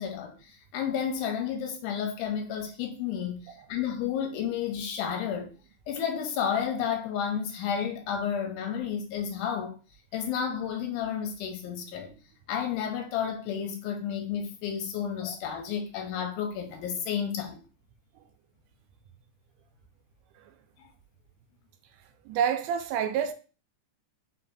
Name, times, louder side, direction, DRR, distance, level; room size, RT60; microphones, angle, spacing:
voice 1, 0.0-5.5 5.9-9.8 10.1-12.1 12.5-17.6, left 8 dB, 80° left, 2.0 m, -31 dB
voice 2, 22.3-23.3, right 8 dB, 80° right, 2.0 m, -28 dB
4.7 x 3.8 x 2.6 m
omnidirectional pair, 3.8 m